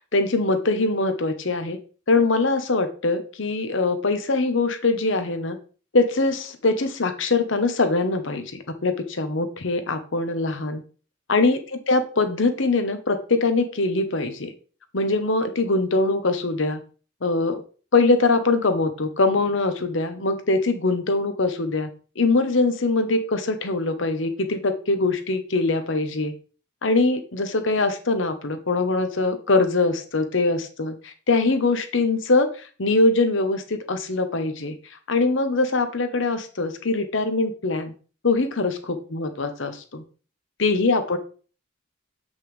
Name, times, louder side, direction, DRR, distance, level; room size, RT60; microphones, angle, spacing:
voice 1, 0.1-1.8 2.1-5.6 5.9-10.8 11.3-14.5 14.9-16.8 17.2-17.6 17.9-21.9 22.2-26.3 26.8-37.9 38.2-40.0 40.6-41.2, left 3 dB, 70° left, 8 dB, 1.0 m, -22 dB
8.0 x 5.4 x 3.4 m, 0.38 s
head